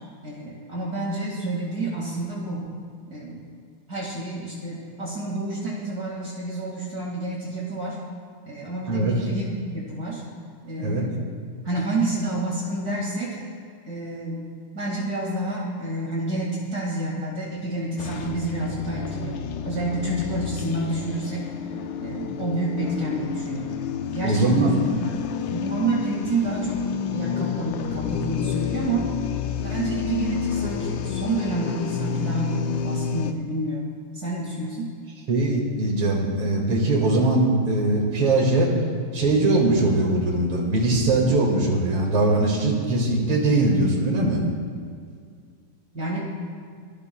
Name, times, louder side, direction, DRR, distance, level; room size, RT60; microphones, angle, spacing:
voice 1, 0.2-2.6 3.1-3.4 3.9-8.0 8.5-10.2 10.6-11.3 11.6-13.4 13.9-14.5 14.7-21.5 22.0-23.8 24.1-25.1 25.5-26.9 27.1-29.1 29.6-33.9 34.1-34.9 45.9-46.3, right 2 dB, 45° right, -4 dB, 2.5 m, -29 dB
sound 1, 18.0-33.3, left 7 dB, 70° left, 1.3 m, -30 dB
voice 2, 24.2-24.7 35.3-38.7 39.1-44.4, right 2 dB, 85° right, -1 dB, 3.0 m, -21 dB
26.5 x 13.5 x 2.3 m, 2.2 s
omnidirectional pair, 2.3 m